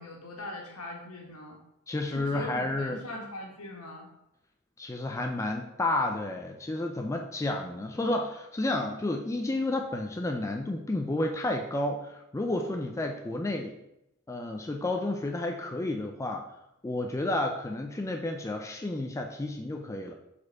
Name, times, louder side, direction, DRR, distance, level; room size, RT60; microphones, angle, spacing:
voice 1, 0.0-1.6 2.1-4.1, left 1 dB, 75° left, 0 dB, 1.5 m, -41 dB
voice 2, 1.9-3.0 4.8-13.8 14.3-16.5 16.8-20.1, left 2 dB, 15° left, 3 dB, 0.3 m, -31 dB
5.0 x 4.2 x 4.6 m, 0.86 s
head